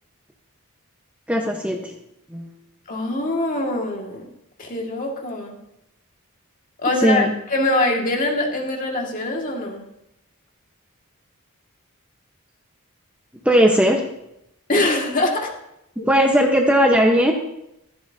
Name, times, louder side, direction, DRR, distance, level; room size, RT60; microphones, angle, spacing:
voice 1, 1.3-1.9 2.3-2.5 7.0-7.3 13.4-14.0 16.1-17.3, equal, 5° right, 1 dB, 1.1 m, -17 dB
voice 2, 2.9-4.2 4.6-5.6 6.8-9.8 14.7-15.5 16.0-16.1, left 2 dB, 40° left, 1 dB, 2.1 m, -23 dB
15.5 x 14.0 x 2.8 m, 0.81 s
head